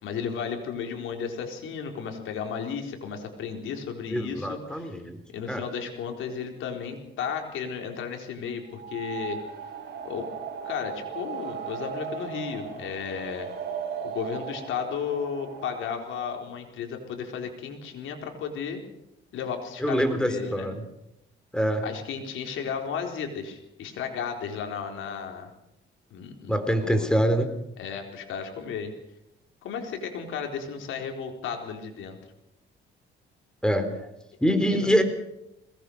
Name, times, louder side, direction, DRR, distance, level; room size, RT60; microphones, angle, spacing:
voice 1, 0.0-4.9 5.3-9.4 10.0-10.3 10.6-13.5 14.0-18.8 19.3-20.7 21.8-25.5 26.1-27.1 27.8-28.9 29.6-32.2 34.7-34.9, left 6 dB, 80° left, 3 dB, 4.3 m, -34 dB
voice 2, 4.1-5.2 5.5-5.6 19.8-20.8 21.5-21.8 26.5-27.5 33.6-34.1 34.4-35.0, equal, 5° left, 9 dB, 3.7 m, -24 dB
sound 1, 8.7-16.3, right 7 dB, 60° right, 6.9 m, -37 dB
21.5 x 19.0 x 6.6 m, 0.85 s
cardioid pair, 90°, 20 cm